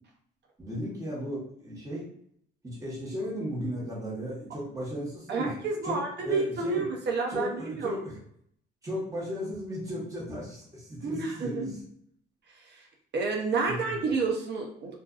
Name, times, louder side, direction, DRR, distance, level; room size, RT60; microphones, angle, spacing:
voice 1, 0.6-2.1 2.6-5.5 5.8-6.0 6.2-6.8 7.3-8.2 8.8-11.8 13.7-13.9, equal, 15° right, -5 dB, 1.2 m, -35 dB
voice 2, 5.3-8.0 11.0-11.6 13.1-15.0, right 4 dB, 60° right, 1 dB, 0.6 m, -29 dB
2.5 x 2.4 x 2.3 m, 0.67 s
cardioid pair, 90°, 20 cm